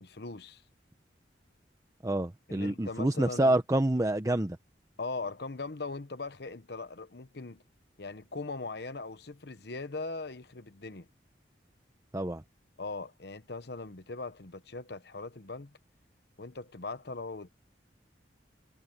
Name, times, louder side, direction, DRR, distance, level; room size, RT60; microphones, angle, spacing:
voice 1, 0.0-0.6 2.5-3.6 5.0-7.6 8.0-11.1 12.8-15.7 16.4-17.5, left 3 dB, 65° left, 1.0 m, -40 dB
voice 2, 2.0-4.6 12.1-12.4, right 1 dB, 20° right, 0.8 m, -27 dB
head